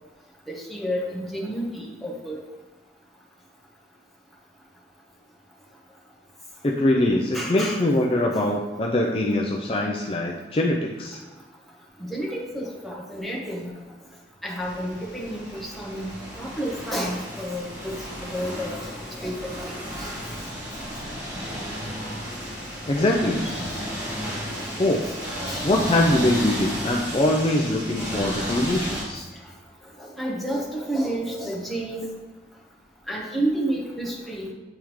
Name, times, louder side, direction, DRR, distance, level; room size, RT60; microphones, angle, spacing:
voice 1, 0.5-2.4 7.3-7.8 12.0-13.7 14.4-16.1 16.4-17.9 18.2-20.1 23.4-23.6 24.7-24.8 25.1-25.6 30.0-32.1 33.1-34.5, right 1 dB, ahead, -4 dB, 1.0 m, -30 dB
voice 2, 6.6-11.2 22.9-23.5 24.8-25.1 25.6-29.2, left 1 dB, 30° left, -1 dB, 0.4 m, -23 dB
sound 1, 14.6-29.0, equal, 20° right, 1.6 m, -33 dB
8.7 x 3.5 x 3.1 m, 1.2 s
head